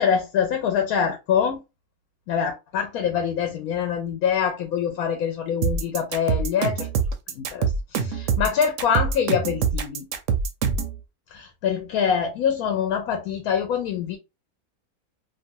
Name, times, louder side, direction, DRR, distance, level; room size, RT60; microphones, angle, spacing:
voice 1, 0.0-1.6 2.3-6.9 7.3-10.1 11.3-14.2, left 7 dB, 80° left, 1.1 m, -25 dB
sound 1, 5.6-10.9, right 6 dB, 70° right, 0.8 m, -24 dB
2.7 x 2.3 x 2.7 m
omnidirectional pair, 1.5 m